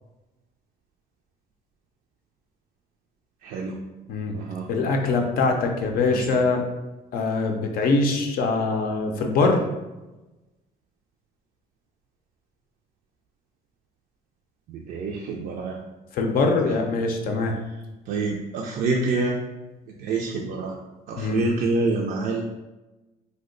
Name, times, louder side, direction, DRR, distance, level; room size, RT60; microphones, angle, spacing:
voice 1, 3.4-3.8 4.3-4.7 6.1-6.4 14.7-15.8 16.6-16.7 18.1-19.4 19.9-20.8 21.1-22.4, right 3 dB, 60° right, 0 dB, 0.4 m, -27 dB
voice 2, 4.7-6.6 7.1-9.6 16.1-17.5 21.2-21.4, left 3 dB, 60° left, 3 dB, 0.5 m, -23 dB
2.7 x 2.1 x 3.7 m, 1.1 s
cardioid pair, 110°, 17 cm